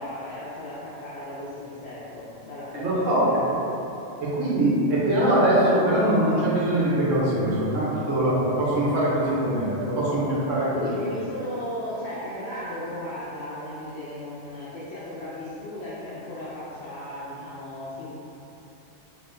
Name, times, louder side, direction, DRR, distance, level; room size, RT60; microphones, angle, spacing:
voice 1, 0.0-3.0 10.7-18.1, left 1 dB, 65° left, -9 dB, 0.8 m, -35 dB
voice 2, 2.7-3.3 3.5-3.6 4.2-10.8, right 1 dB, 90° right, -8 dB, 1.2 m, -22 dB
2.9 x 2.1 x 3.7 m, 2.9 s
omnidirectional pair, 1.3 m